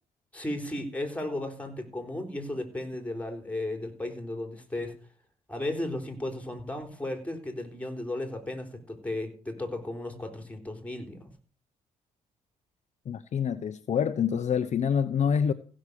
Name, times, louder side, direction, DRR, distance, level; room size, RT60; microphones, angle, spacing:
voice 1, 0.3-5.0 5.5-11.3, left 1 dB, 10° left, 3.8 m, -35 dB
voice 2, 13.1-15.5, left 7 dB, 55° left, 0.9 m, -26 dB
16.0 x 6.4 x 6.8 m
supercardioid pair, 70°, 15 cm